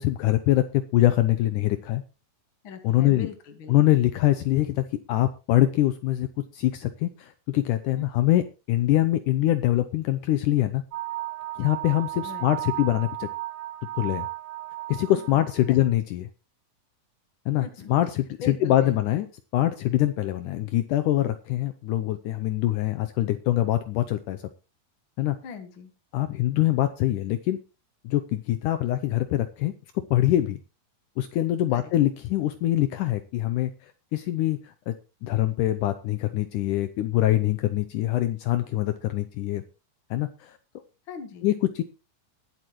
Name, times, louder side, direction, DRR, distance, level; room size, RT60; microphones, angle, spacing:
voice 1, 0.0-2.0 2.8-3.3 3.7-6.3 6.5-10.8 11.6-13.3 14.0-14.3 14.9-16.3 17.5-19.3 19.5-24.5 25.2-25.4 26.1-27.6 28.0-29.7 30.1-30.6 31.2-34.9 35.2-39.6 40.1-40.6 41.4-41.8, left 14 dB, 80° left, 11 dB, 1.9 m, -24 dB
voice 2, 2.6-4.0 8.0-8.3 12.2-12.5 15.1-15.9 17.6-17.9 18.4-19.0 25.4-25.9 31.7-31.9 41.1-41.5, left 6 dB, 45° left, 7 dB, 1.9 m, -41 dB
sound 1, 10.9-15.9, right 17 dB, 60° right, 1.6 m, -35 dB
21.5 x 8.0 x 3.1 m, 0.29 s
omnidirectional pair, 4.3 m